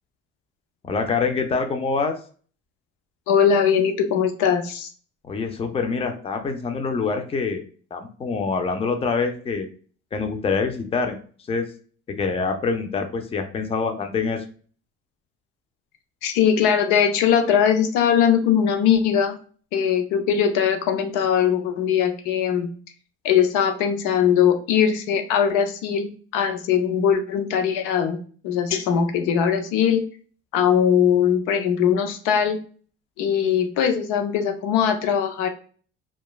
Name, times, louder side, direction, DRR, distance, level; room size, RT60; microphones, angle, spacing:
voice 1, 0.8-2.2 5.2-7.6 7.9-9.7 10.1-11.2 11.5-11.7 12.2-14.4, left 4 dB, 20° left, 5 dB, 0.5 m, -25 dB
voice 2, 3.3-4.9 16.2-19.4 19.7-22.7 23.2-28.2 28.4-30.0 30.5-32.6 33.2-35.5, left 8 dB, 80° left, 7 dB, 0.6 m, -20 dB
2.9 x 2.3 x 2.3 m, 0.42 s
supercardioid pair, 95°, 30 cm